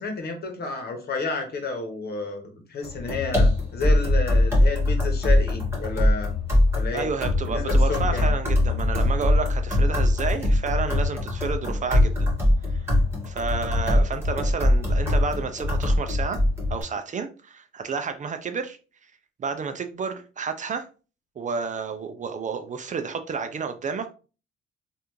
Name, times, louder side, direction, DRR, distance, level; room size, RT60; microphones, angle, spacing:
voice 1, 0.0-6.4 6.7-7.1 7.4-8.3, left 3 dB, 55° left, 1.1 m, -31 dB
sound 1, 2.8-16.8, left 1 dB, 10° right, 1.6 m, -22 dB
voice 2, 6.9-12.3 12.7-13.0 13.3-16.4 16.7-18.8 19.4-20.9 21.4-24.1, right 5 dB, 40° right, 0.5 m, -30 dB
3.3 x 2.5 x 3.0 m
cardioid pair, 90°, 20 cm